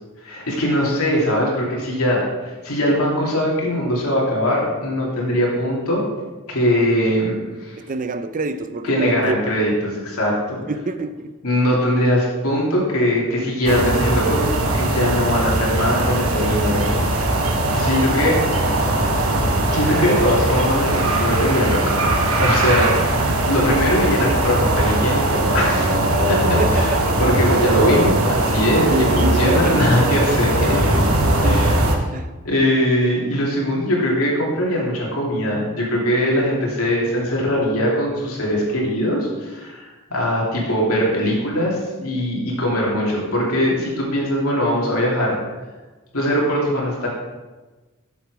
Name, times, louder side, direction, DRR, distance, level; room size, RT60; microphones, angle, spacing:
voice 1, 0.2-6.0 6.5-7.8 8.8-10.6 11.4-16.9 17.2-17.3 17.7-18.4 19.7-22.0 22.4-26.0 26.3-31.0 31.4-32.0 32.4-45.4 46.1-47.1, equal, 85° left, -3 dB, 2.7 m, -21 dB
voice 2, 7.8-9.4 10.7-11.3 26.4-27.2 28.9-29.9 31.8-32.3, right 2 dB, 40° right, 10 dB, 0.5 m, -26 dB
sound 1, 13.7-32.0, right 1 dB, 75° right, 1.0 m, -19 dB
7.4 x 7.1 x 4.8 m, 1.2 s
head